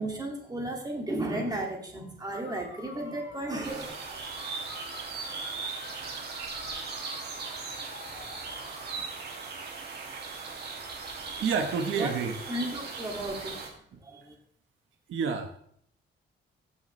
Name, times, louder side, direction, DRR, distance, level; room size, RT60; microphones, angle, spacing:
voice 1, 0.0-3.9 12.0-12.1 12.5-13.7 14.0-14.3, right 1 dB, 20° right, 0 dB, 2.3 m, -34 dB
sound 1, 2.2-9.1, left 4 dB, 65° left, 2.1 m, -49 dB
sound 2, 3.6-13.7, right 4 dB, 55° right, 2.5 m, -38 dB
voice 2, 11.4-12.3 15.1-15.5, right 6 dB, 80° right, 5 dB, 1.3 m, -28 dB
15.5 x 7.2 x 3.3 m, 0.64 s
cardioid pair, 145°, 20 cm